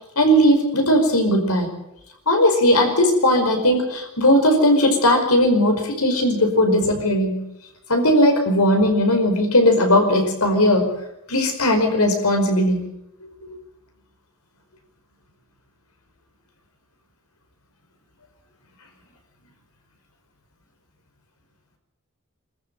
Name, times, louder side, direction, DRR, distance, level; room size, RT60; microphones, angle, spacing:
voice 1, 0.2-1.7 2.3-7.4 7.9-10.9 11.3-12.9, left 1 dB, 85° left, 4 dB, 5.3 m, -18 dB
24.0 x 14.0 x 9.1 m, 0.84 s
head